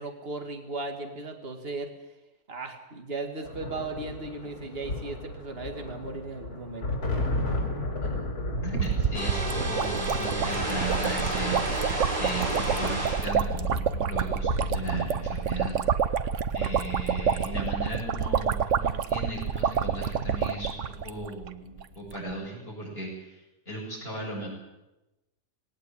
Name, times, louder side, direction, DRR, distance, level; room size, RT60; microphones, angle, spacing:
voice 1, 0.0-1.9 2.5-6.9, right 3 dB, 35° right, 4 dB, 2.4 m, -36 dB
sound 1, 3.4-19.2 20.4-20.6 20.9-21.6, left 2 dB, 65° left, 4.9 m, -35 dB
voice 2, 8.0-8.3 8.6-15.8 16.5-23.4 23.7-24.5, right 1 dB, 35° left, -2 dB, 7.3 m, -36 dB
sound 2, 8.7-21.5 21.8-21.9 22.1-22.3, right 7 dB, 55° right, 1.1 m, -28 dB
sound 3, 9.1-13.3, right 1 dB, 70° right, 6.7 m, -30 dB
19.5 x 17.5 x 8.6 m, 0.99 s
omnidirectional pair, 1.7 m